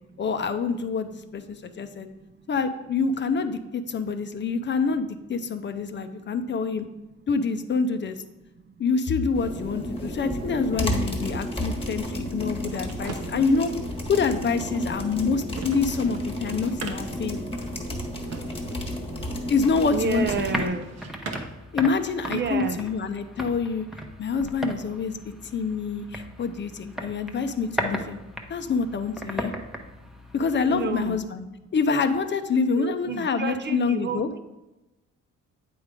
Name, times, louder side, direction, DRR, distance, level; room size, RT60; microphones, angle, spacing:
voice 1, 0.2-2.1 2.5-6.9 7.3-8.2 8.8-13.7 14.1-17.5 19.5-20.7 21.7-23.9 24.2-25.2 25.5-28.2 28.5-29.5 30.3-31.5 31.7-34.3, left 5 dB, 40° left, 9 dB, 0.6 m, -26 dB
sound 1, 9.3-20.7, equal, 20° left, 1.3 m, -32 dB
sound 2, 12.6-21.7, right 4 dB, 60° right, 0.9 m, -43 dB
sound 3, 19.8-31.2, equal, ahead, 0.8 m, -37 dB
voice 2, 19.9-20.9 22.3-22.8 30.7-31.2 32.8-34.4, right 5 dB, 35° right, 9 dB, 0.6 m, -30 dB
8.6 x 3.6 x 4.8 m, 1.0 s
cardioid pair, 90°, 30 cm